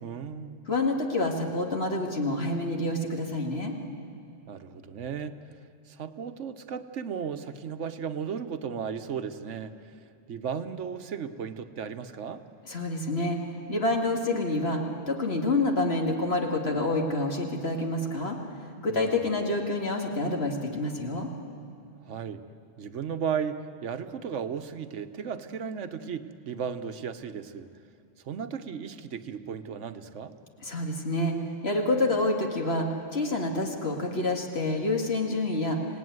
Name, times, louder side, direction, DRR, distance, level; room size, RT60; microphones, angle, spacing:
voice 1, 0.0-0.6 4.5-5.4 5.9-9.9 10.3-12.4 18.9-19.2 22.0-22.4 22.8-27.7 28.2-30.3, right 7 dB, 80° right, 10 dB, 1.3 m, -35 dB
voice 2, 0.7-3.7 12.7-21.3 30.6-31.4 31.6-35.8, left 2 dB, 60° left, 2 dB, 2.4 m, -28 dB
26.5 x 18.0 x 9.5 m, 2.5 s
omnidirectional pair, 1.2 m